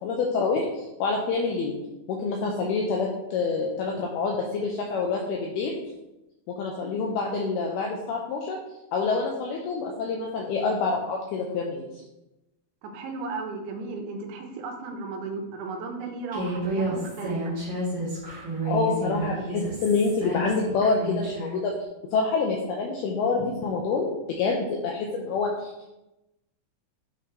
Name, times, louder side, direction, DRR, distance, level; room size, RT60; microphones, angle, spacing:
voice 1, 0.0-1.8 2.1-5.8 6.6-8.6 8.9-11.9 18.7-21.7 22.1-25.9, left 4 dB, 85° left, 0 dB, 2.2 m, -27 dB
voice 2, 12.8-17.6, right 3 dB, 85° right, 4 dB, 3.1 m, -35 dB
Human voice, 16.3-21.5, right 2 dB, 45° right, 1.7 m, -31 dB
8.0 x 4.6 x 3.0 m, 0.95 s
omnidirectional pair, 5.2 m